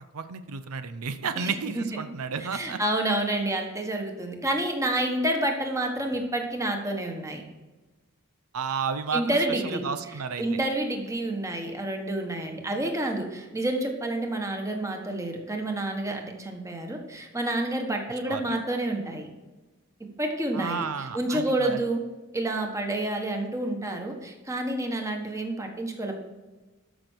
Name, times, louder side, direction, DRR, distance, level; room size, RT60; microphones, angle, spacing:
voice 1, 0.1-2.8 8.5-10.6 18.3-18.6 20.5-21.8, right 5 dB, 90° right, 11 dB, 0.6 m, -32 dB
voice 2, 1.4-1.8 2.4-7.4 9.1-9.8 10.4-19.3 20.2-22.0 22.3-26.2, right 1 dB, 15° right, 3 dB, 1.4 m, -29 dB
13.0 x 6.1 x 4.6 m, 1.2 s
head